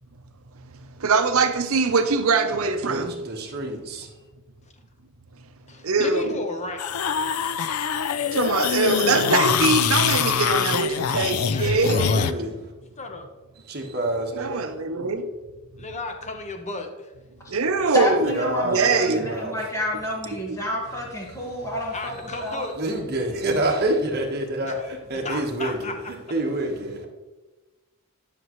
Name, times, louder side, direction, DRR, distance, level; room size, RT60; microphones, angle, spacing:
voice 1, 1.0-3.1 5.8-6.4 8.3-12.0 14.4-15.3 17.5-18.4 18.6-19.3 20.5-20.6, right 4 dB, 70° right, 0.8 m, -22 dB
voice 2, 2.8-4.1 11.9-12.5 13.6-14.7 18.2-19.6 20.8-21.0 21.4-21.8 22.8-27.1, right 1 dB, 50° right, 1.4 m, -28 dB
voice 3, 5.7-6.9 11.5-12.3 13.0-13.3 15.8-17.1 21.9-22.7 24.6-24.8 25.1-25.9, left 2 dB, 30° left, 1.0 m, -34 dB
sound 1, 6.8-12.3, left 7 dB, 85° left, 0.4 m, -24 dB
voice 4, 17.9-22.1 22.4-22.7, left 1 dB, 15° left, 1.9 m, -29 dB
10.5 x 6.1 x 3.1 m
head